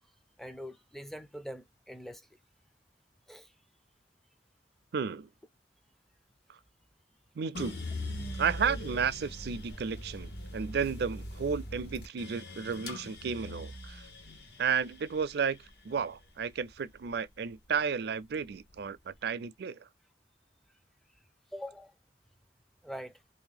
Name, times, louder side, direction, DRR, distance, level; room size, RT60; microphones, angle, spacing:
voice 1, 0.4-2.3 3.3-3.5 13.0-13.1 14.3-14.4 21.5-21.9 22.8-23.2, equal, ahead, 0.4 m, -44 dB
voice 2, 4.9-5.3 6.5-6.6 7.4-7.8 8.4-14.1 14.6-15.6 15.8-19.8, right 6 dB, 60° right, 0.4 m, -33 dB
sound 1, 7.5-17.7 18.2-19.0, left 1 dB, 65° left, 0.9 m, -42 dB
3.1 x 2.7 x 3.9 m
head